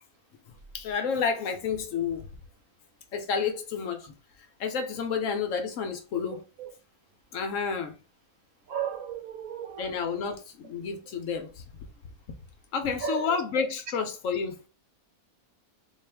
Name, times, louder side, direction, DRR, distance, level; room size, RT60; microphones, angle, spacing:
voice 1, 0.7-2.3 3.1-4.1 4.6-6.4 7.3-7.9 9.8-11.6 12.7-14.6, left 6 dB, 65° left, 0.9 m, -30 dB
voice 2, 8.7-9.9 13.0-13.4, right 8 dB, 70° right, 1.1 m, -34 dB
3.9 x 2.4 x 3.3 m
omnidirectional pair, 1.6 m